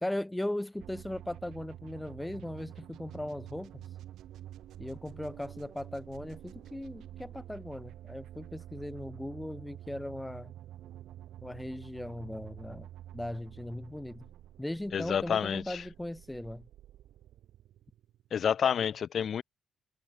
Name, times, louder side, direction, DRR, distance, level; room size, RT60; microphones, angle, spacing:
voice 1, 0.0-3.8 4.8-10.5 11.4-12.9 13.1-14.2 14.6-16.6, left 1 dB, 10° left, 0.3 m, -38 dB
sound 1, 0.8-18.5, right 12 dB, 80° right, 2.2 m, -49 dB
voice 2, 14.9-15.8 18.3-19.4, left 8 dB, 55° left, 0.8 m, -29 dB
cardioid pair, 90°, 0 cm